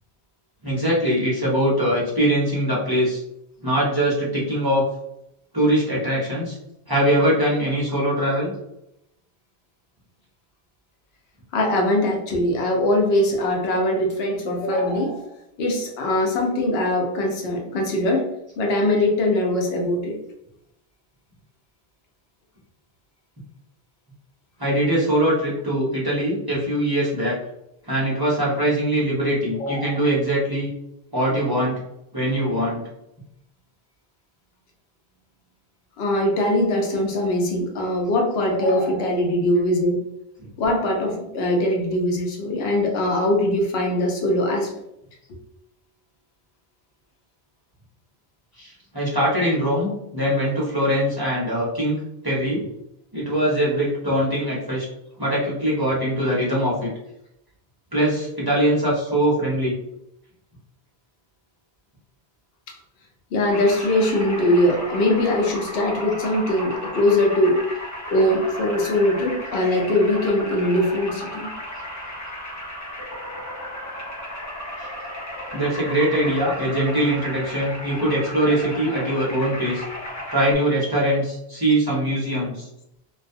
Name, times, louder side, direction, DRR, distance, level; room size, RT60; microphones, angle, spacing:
voice 1, 0.6-3.2 3.6-4.9 5.5-6.6 6.9-8.5 24.6-27.4 27.8-30.7 31.1-31.7 32.1-32.8 48.6-52.0 52.2-52.7 53.1-54.9 55.2-56.9 57.9-59.7 74.8-74.9 75.5-79.8 80.3-82.7, right 1 dB, 30° right, -7 dB, 0.5 m, -22 dB
voice 2, 11.5-15.3 15.6-18.3 18.6-20.1 29.5-30.0 36.0-40.0 40.6-44.7 63.3-67.6 68.1-71.4, left 1 dB, 80° left, 1 dB, 0.8 m, -21 dB
sound 1, 63.5-80.5, equal, 25° left, 0.4 m, -34 dB
2.3 x 2.1 x 2.5 m, 0.81 s
omnidirectional pair, 1.0 m